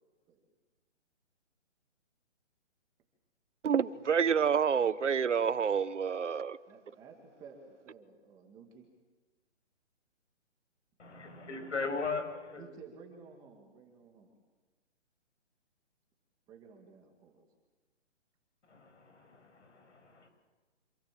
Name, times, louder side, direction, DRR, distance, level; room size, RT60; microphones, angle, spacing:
voice 1, 3.6-6.6, right 7 dB, 80° right, 1.3 m, -28 dB
voice 2, 6.7-8.9 12.5-14.4 16.5-17.5, right 5 dB, 10° right, 2.1 m, -54 dB
voice 3, 11.0-12.7 18.7-20.3, left 4 dB, 70° left, 7.3 m, -38 dB
27.0 x 26.5 x 7.7 m
hypercardioid pair, 170°, 36 cm